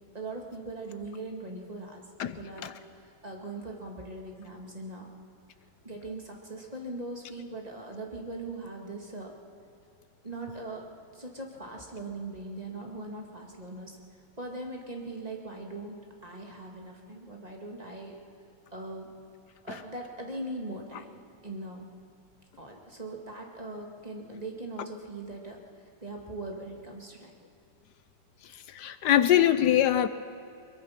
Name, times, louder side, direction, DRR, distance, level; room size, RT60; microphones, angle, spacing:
voice 1, 0.1-5.1 5.8-9.3 10.2-10.9 11.1-14.0 14.4-16.0 16.2-18.2 18.7-19.1 19.6-21.9 22.6-25.6 26.0-27.3, right 2 dB, 20° right, 1 dB, 2.0 m, -40 dB
voice 2, 2.2-2.7 28.5-30.1, left 11 dB, 75° left, 12 dB, 1.0 m, -24 dB
22.0 x 22.0 x 5.9 m, 2.5 s
omnidirectional pair, 2.4 m